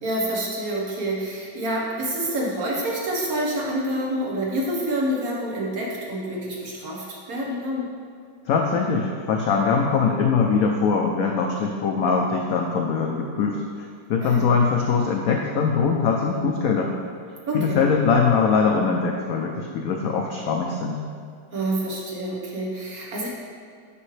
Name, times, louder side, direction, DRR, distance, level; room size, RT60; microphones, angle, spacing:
voice 1, 0.0-7.9 14.2-14.5 17.5-17.8 21.5-23.3, right 1 dB, 50° right, -4 dB, 1.6 m, -27 dB
voice 2, 8.5-13.6 14.1-16.9 17.5-21.0, left 5 dB, 85° left, 1 dB, 0.7 m, -22 dB
8.4 x 5.3 x 3.2 m, 2.2 s
omnidirectional pair, 2.1 m